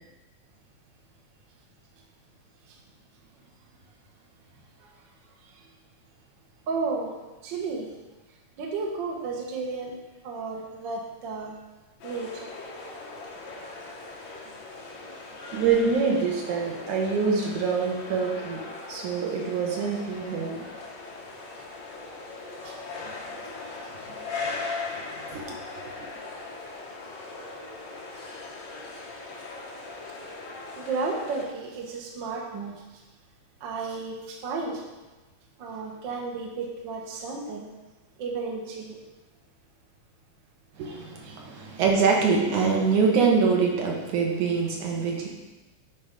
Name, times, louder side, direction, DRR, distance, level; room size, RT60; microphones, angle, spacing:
voice 1, 6.7-7.1 7.4-7.9 8.6-10.0 10.2-11.5 12.0-12.4 22.6-22.7 30.7-32.8 33.6-34.8 35.6-37.7 38.2-39.0 41.2-41.4, right 4 dB, 55° right, -1 dB, 1.3 m, -33 dB
sound 1, 12.0-31.5, left 3 dB, 65° left, 2.4 m, -39 dB
voice 2, 15.5-18.6 18.9-20.6 23.0-23.1 23.9-24.6 24.9-25.8 40.8-45.3, right 5 dB, 75° right, -1 dB, 2.5 m, -25 dB
8.8 x 4.8 x 5.2 m, 1.1 s
omnidirectional pair, 3.7 m